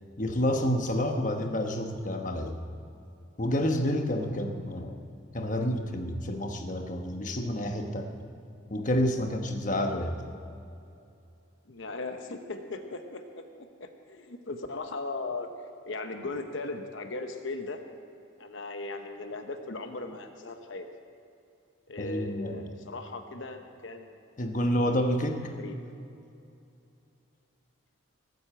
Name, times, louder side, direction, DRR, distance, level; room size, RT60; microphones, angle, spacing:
voice 1, 0.2-2.6 3.4-5.0 5.3-8.1 8.7-10.2 22.0-22.7 24.4-25.4, equal, 40° left, 4 dB, 1.1 m, -29 dB
voice 2, 11.7-13.2 13.6-15.5 15.9-17.8 18.4-20.9 21.9-24.1 25.5-25.7, left 3 dB, 70° left, 6 dB, 0.9 m, -38 dB
18.0 x 8.2 x 7.7 m, 2.6 s
head